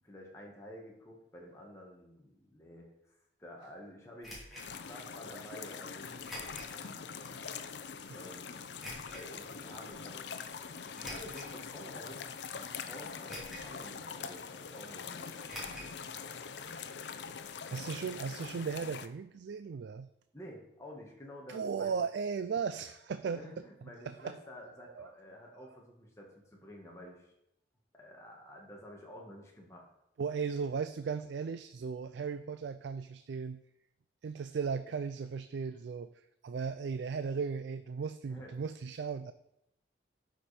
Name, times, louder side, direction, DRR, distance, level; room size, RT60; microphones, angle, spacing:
voice 1, 0.0-3.1 3.4-4.4 4.7-7.7 8.1-8.5 9.1-10.4 10.9-15.9 20.3-22.0 23.3-27.3 27.9-29.9 35.7-35.8 38.3-38.5, equal, 15° left, -2 dB, 1.8 m, -51 dB
sound 1, 4.2-4.7 6.2-6.7 7.3-7.4 8.8-9.2 10.9-11.5 12.2-12.3 13.3-13.8 14.0-14.1 15.5-15.9 16.2-16.3 16.6-16.7, equal, ahead, 2.7 m, -45 dB
sound 2, 4.6-19.1, left 6 dB, 80° left, 0.6 m, -44 dB
voice 2, 17.7-20.1 21.5-23.4 24.0-24.4 24.8-25.1 25.5-25.8 30.2-33.6 34.2-39.3, right 5 dB, 80° right, 12 dB, 0.4 m, -36 dB
12.0 x 5.2 x 4.3 m, 0.81 s
head